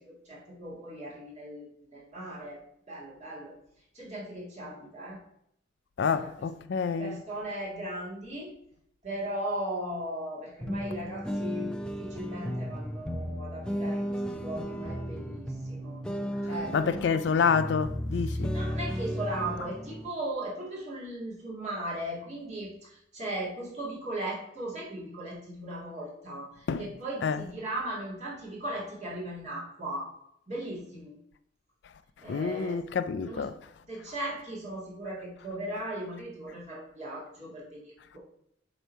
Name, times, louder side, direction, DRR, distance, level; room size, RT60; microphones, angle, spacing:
voice 1, 0.0-2.6 2.9-3.5 3.9-5.2 6.1-6.5 7.0-8.5 9.0-16.0 16.4-17.0 18.2-30.1 30.5-31.1 32.2-32.8 33.3-33.5 33.9-38.2, right 1 dB, 35° right, 2.1 m, -37 dB
voice 2, 6.0-7.2 16.7-18.5 26.7-26.9 27.2-27.4 32.3-33.5, left 5 dB, 60° left, 0.4 m, -28 dB
sound 1, 10.6-20.1, equal, 5° left, 0.5 m, -34 dB
7.9 x 3.2 x 5.4 m
head